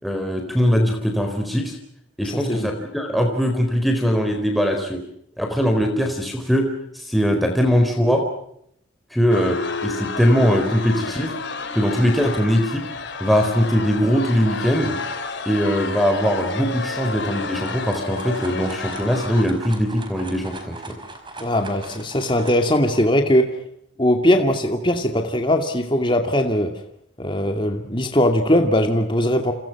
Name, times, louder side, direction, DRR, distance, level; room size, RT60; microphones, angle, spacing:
voice 1, 0.0-1.8 2.2-5.0 5.4-6.7 6.9-8.2 9.1-11.3 11.7-12.8 13.2-15.0 15.5-20.8, equal, ahead, 2 dB, 4.2 m, -21 dB
voice 2, 2.2-2.7 21.4-23.5 24.0-26.7 27.2-29.5, left 1 dB, 25° left, 4 dB, 2.4 m, -20 dB
sound 1, 9.3-19.5, left 3 dB, 55° left, 4.0 m, -30 dB
sound 2, 17.3-23.1, right 3 dB, 25° right, 5.2 m, -40 dB
30.0 x 28.5 x 6.0 m, 0.73 s
head